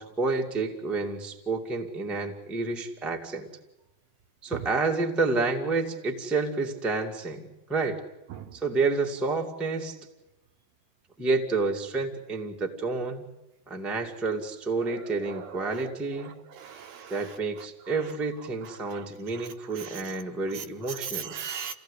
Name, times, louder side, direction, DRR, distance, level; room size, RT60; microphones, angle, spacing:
voice 1, 0.0-3.5 4.4-8.0 8.5-10.0 11.2-13.3 13.7-16.3 17.1-21.3, right 3 dB, ahead, 2 dB, 1.1 m, -29 dB
voice 2, 15.2-15.9 16.2-17.1 18.9-19.1 19.3-19.5 19.8-20.0 20.6-21.7, right 8 dB, 70° right, 7 dB, 2.4 m, -39 dB
28.5 x 17.5 x 8.4 m, 1.0 s
omnidirectional pair, 4.4 m